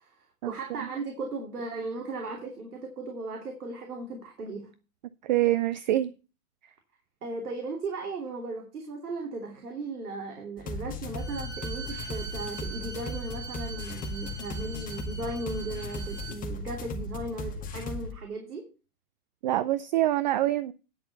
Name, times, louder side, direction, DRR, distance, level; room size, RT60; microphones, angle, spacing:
voice 1, 0.0-4.7 7.2-18.7, right 3 dB, 85° right, 2.9 m, -37 dB
voice 2, 5.2-6.1 19.4-20.7, right 14 dB, 35° right, 0.4 m, -25 dB
sound 1, 10.6-18.1, left 2 dB, 20° left, 2.0 m, -36 dB
Bowed string instrument, 11.2-16.4, right 5 dB, 10° right, 2.1 m, -43 dB
10.5 x 6.8 x 5.3 m
hypercardioid pair, 130°, 44 cm